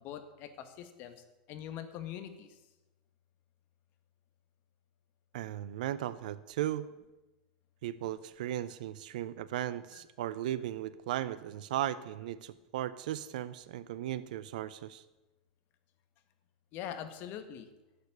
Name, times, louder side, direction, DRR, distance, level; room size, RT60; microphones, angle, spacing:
voice 1, 0.0-2.6 9.9-10.0 16.7-17.7, left 10 dB, 50° left, 9 dB, 1.8 m, -43 dB
voice 2, 5.3-6.9 7.8-15.0, right 12 dB, 70° right, 15 dB, 0.5 m, -36 dB
11.5 x 6.8 x 9.7 m, 1.1 s
hypercardioid pair, 100°, 4 cm